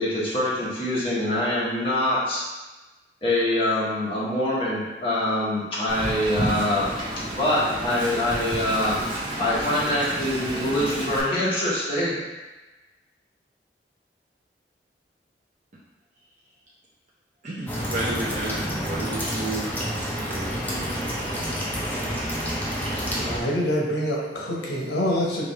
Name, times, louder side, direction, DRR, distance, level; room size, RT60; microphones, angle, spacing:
voice 1, 0.0-2.4 3.2-6.9 7.4-12.2, left 1 dB, 30° left, -8 dB, 1.3 m, -24 dB
Wind, 5.9-11.2, right 1 dB, 30° right, 1.0 m, -30 dB
voice 2, 17.4-19.7 20.2-21.0, right 2 dB, 45° right, -8 dB, 0.7 m, -32 dB
sound 1, 17.7-23.4, equal, 10° left, 0.7 m, -29 dB
voice 3, 23.1-25.4, equal, 70° left, -3 dB, 1.0 m, -26 dB
4.9 x 2.6 x 3.2 m, 1.2 s
head